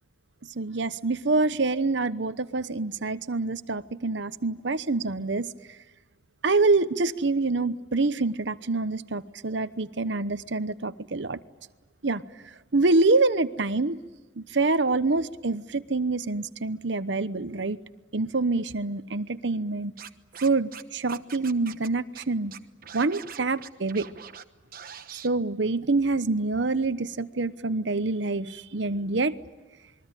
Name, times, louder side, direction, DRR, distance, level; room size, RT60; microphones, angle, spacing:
voice 1, 0.5-5.5 6.4-11.4 12.0-12.2 12.7-14.0 14.4-17.8 18.1-19.9 20.4-22.5 22.9-24.1 25.1-29.4, right 3 dB, 65° right, 0.9 m, -26 dB
Scratching (performance technique), 20.0-20.8 21.1-21.9 22.1-22.2 22.5-24.4 24.7-25.3, right 8 dB, 45° right, 1.1 m, -43 dB
28.0 x 22.0 x 9.1 m
head